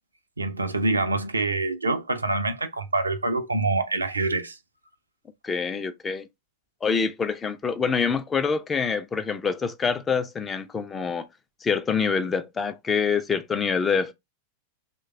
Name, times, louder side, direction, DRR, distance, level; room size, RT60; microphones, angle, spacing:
voice 1, 0.4-4.6, right 2 dB, 80° right, 0.4 m, -26 dB
voice 2, 5.4-6.3 6.8-11.3 11.6-14.1, left 5 dB, 20° left, 0.4 m, -26 dB
3.1 x 2.2 x 3.5 m
figure-of-eight pair, 90°, 0 cm